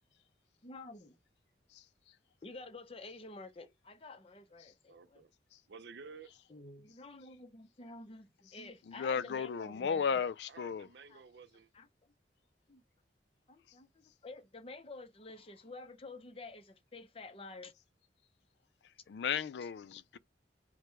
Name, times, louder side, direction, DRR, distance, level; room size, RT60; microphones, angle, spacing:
voice 1, 0.6-1.2 2.4-5.2 6.5-10.2 11.1-11.2 11.7-12.1 12.7-12.8 13.5-17.7, left 2 dB, 35° left, 0.6 m, -50 dB
voice 2, 4.9-5.3 5.7-6.3 10.5-11.7, right 5 dB, 75° right, 0.5 m, -52 dB
voice 3, 8.9-10.9 19.1-20.2, left 6 dB, 75° left, 0.4 m, -35 dB
4.7 x 2.1 x 4.7 m
head